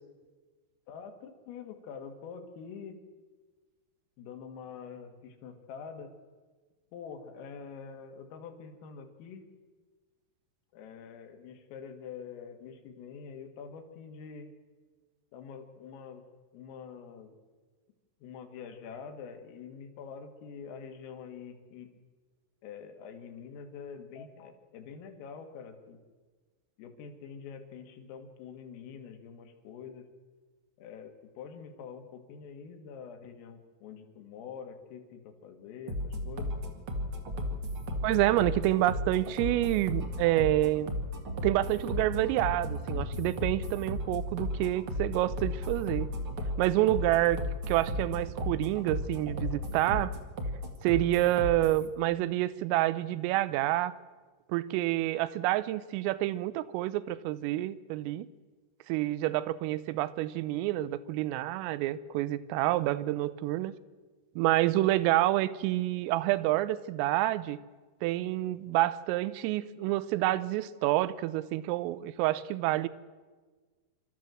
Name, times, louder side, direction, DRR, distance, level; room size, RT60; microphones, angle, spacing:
voice 1, 0.9-3.0 4.2-6.1 6.9-9.5 10.7-14.5 15.3-16.2 16.5-17.4 18.2-22.0 22.6-26.0 26.8-30.1 30.8-36.6, left 6 dB, 80° left, 6 dB, 4.4 m, -45 dB
sound 1, 35.9-51.9, left 1 dB, 60° right, 1.3 m, -35 dB
voice 2, 38.0-40.9 41.4-46.1 46.6-47.4 47.7-50.1 50.8-53.9 54.5-58.3 58.9-63.8 64.4-67.6 68.0-72.9, right 15 dB, 85° right, 16 dB, 3.4 m, -28 dB
27.5 x 13.5 x 7.6 m, 1.4 s
omnidirectional pair, 5.9 m